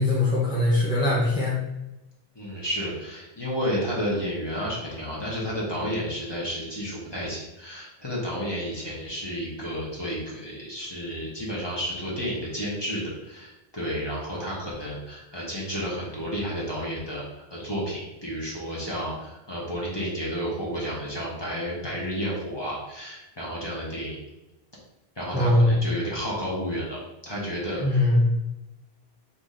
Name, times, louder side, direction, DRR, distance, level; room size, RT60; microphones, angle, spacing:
voice 1, 0.0-1.6 25.3-25.8 27.8-28.2, left 1 dB, 5° right, -6 dB, 0.8 m, -21 dB
voice 2, 2.3-24.2 25.2-27.0 27.2-28.0, equal, 25° left, -5 dB, 1.1 m, -31 dB
4.9 x 2.8 x 3.8 m, 0.96 s
omnidirectional pair, 1.0 m